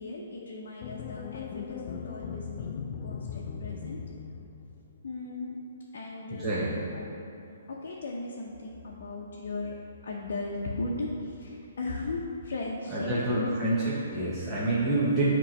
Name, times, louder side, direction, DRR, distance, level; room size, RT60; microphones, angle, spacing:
voice 1, 0.0-4.0 5.0-5.6 5.9-7.1 7.7-9.7 10.0-13.5 14.7-14.9, left 2 dB, 65° left, -3 dB, 0.7 m, -37 dB
sound 1, 0.8-5.1, left 7 dB, 40° left, 0.3 m, -39 dB
voice 2, 6.3-6.7 12.9-15.3, right 2 dB, 10° right, -11 dB, 0.9 m, -27 dB
7.3 x 3.0 x 5.3 m, 2.6 s
hypercardioid pair, 155°, 0 cm